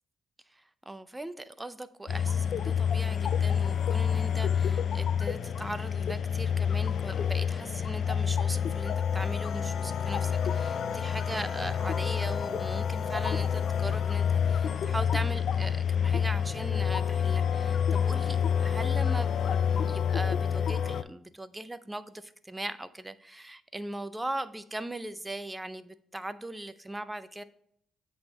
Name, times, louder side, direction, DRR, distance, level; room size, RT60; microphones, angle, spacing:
voice 1, 0.5-27.4, right 1 dB, 10° right, 13 dB, 0.4 m, -39 dB
sound 1, 2.1-21.0, left 7 dB, 60° left, 0.3 m, -28 dB
8.1 x 3.5 x 4.1 m, 0.68 s
cardioid pair, 90°, 0 cm